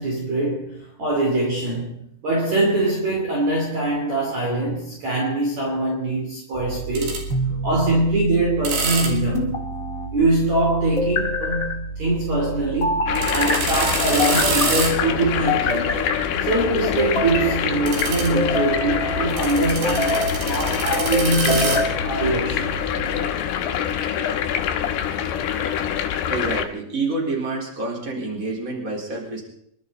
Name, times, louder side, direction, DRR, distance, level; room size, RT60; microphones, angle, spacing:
voice 1, 0.0-7.3 7.6-9.7 10.1-16.0 16.5-22.7, right 2 dB, 45° right, 3.7 m, -23 dB
sound 1, 6.5-23.3, right 4 dB, 65° right, 4.5 m, -29 dB
sound 2, 7.3-8.0 9.3-10.1 11.0-11.7 12.8-13.6 14.2-14.8 15.5-16.3 17.0-17.6 18.3-19.3 19.8-20.4 21.1-21.9, left 2 dB, 30° left, 1.6 m, -25 dB
sound 3, 13.1-26.7, left 9 dB, 75° left, 3.1 m, -25 dB
voice 2, 26.3-29.4, right 3 dB, 20° right, 4.1 m, -27 dB
27.5 x 12.0 x 4.1 m
omnidirectional pair, 5.0 m